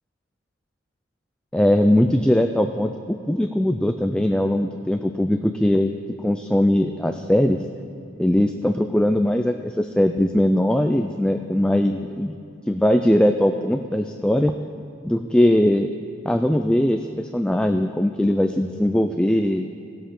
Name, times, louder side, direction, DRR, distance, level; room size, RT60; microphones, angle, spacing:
voice 1, 1.5-5.9 6.2-7.6 8.2-12.3 12.7-14.5 15.0-15.9 16.2-19.7, left 1 dB, 5° left, 6 dB, 0.3 m, -20 dB
19.0 x 6.8 x 3.7 m, 2.7 s
head